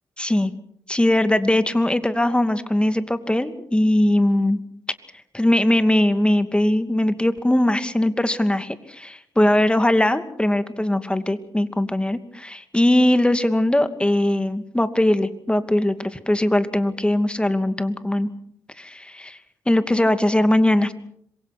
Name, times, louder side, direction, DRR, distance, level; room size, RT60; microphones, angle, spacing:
voice 1, 0.2-0.5 0.9-4.6 5.3-18.3 18.8-19.4 19.7-20.9, left 1 dB, 10° left, 10 dB, 2.6 m, -20 dB
27.0 x 23.0 x 6.2 m, 0.68 s
hypercardioid pair, 40°, 8 cm